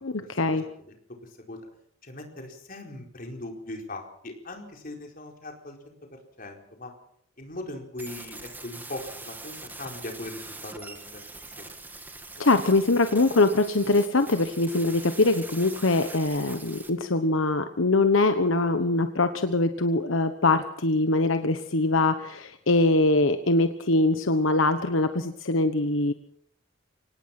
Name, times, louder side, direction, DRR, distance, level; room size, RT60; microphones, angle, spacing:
voice 1, 0.0-0.6 12.4-26.1, left 2 dB, 75° left, 8 dB, 1.1 m, -23 dB
voice 2, 1.2-1.6 2.0-6.9 7.4-11.2 11.6-11.7, left 1 dB, 45° left, 2 dB, 4.6 m, -40 dB
sound 1, 8.0-16.9, right 2 dB, 10° right, 1.9 m, -43 dB
24.5 x 18.5 x 6.0 m, 0.68 s
head